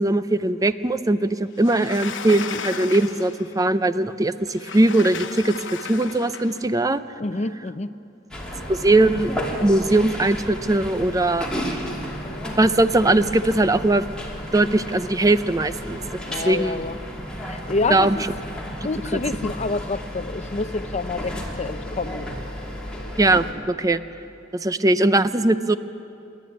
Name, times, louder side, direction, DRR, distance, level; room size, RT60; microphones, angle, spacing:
voice 1, 0.0-5.5 5.8-7.0 8.7-9.3 9.6-11.5 12.5-14.0 14.5-16.0 16.5-16.8 17.9-18.2 23.2-24.0 24.5-25.8, right 2 dB, 20° right, 12 dB, 0.6 m, -20 dB
Sliding door, 1.6-3.5 4.5-6.6, left 6 dB, 75° left, 1.1 m, -34 dB
voice 2, 7.2-7.9 16.2-17.0 17.4-18.2 18.8-22.3, left 3 dB, 35° left, 12 dB, 0.6 m, -28 dB
sound 1, 8.3-23.5, equal, 5° left, 2.8 m, -33 dB
28.5 x 11.5 x 9.3 m, 2.7 s
head